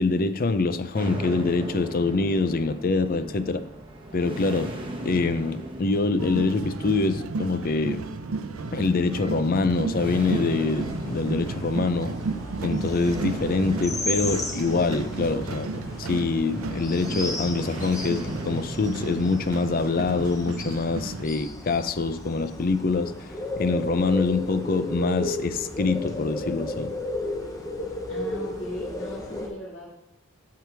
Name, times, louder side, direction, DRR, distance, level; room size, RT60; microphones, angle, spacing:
voice 1, 0.0-3.6 4.1-4.7 5.0-8.0 8.7-12.1 12.6-23.1 23.6-26.9, left 3 dB, 45° left, 11 dB, 0.5 m, -25 dB
sound 1, 0.9-20.1, right 1 dB, 25° right, 1.1 m, -39 dB
sound 2, 6.2-21.2, right 3 dB, 80° right, 0.5 m, -33 dB
sound 3, 10.7-29.5, left 1 dB, 15° left, 1.0 m, -35 dB
voice 2, 28.1-30.0, left 1 dB, 60° left, -6 dB, 2.0 m, -38 dB
13.0 x 4.7 x 3.5 m, 0.85 s
head